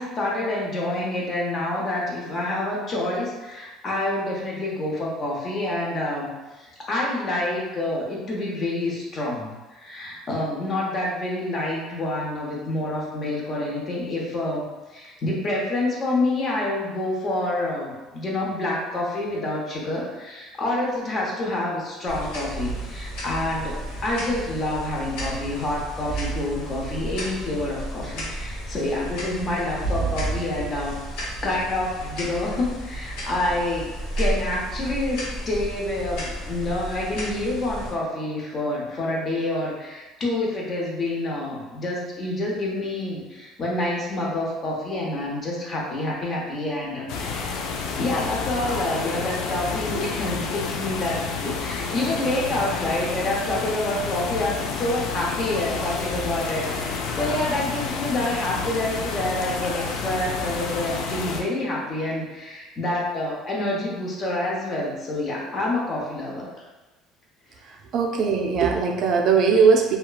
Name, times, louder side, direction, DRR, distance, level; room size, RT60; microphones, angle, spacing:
voice 1, 0.0-6.3 6.6-14.6 14.9-30.9 31.4-33.9 34.2-47.6 48.0-66.5, left 1 dB, 35° left, -3 dB, 0.7 m, -27 dB
sound 1, 22.1-37.9, right 1 dB, 90° left, 0.8 m, -32 dB
sound 2, 47.1-61.4, left 5 dB, 70° left, 0.3 m, -30 dB
voice 2, 67.6-70.0, right 5 dB, 50° right, 1 dB, 0.3 m, -20 dB
2.8 x 2.2 x 2.3 m, 1.1 s
cardioid pair, 135°, 0 cm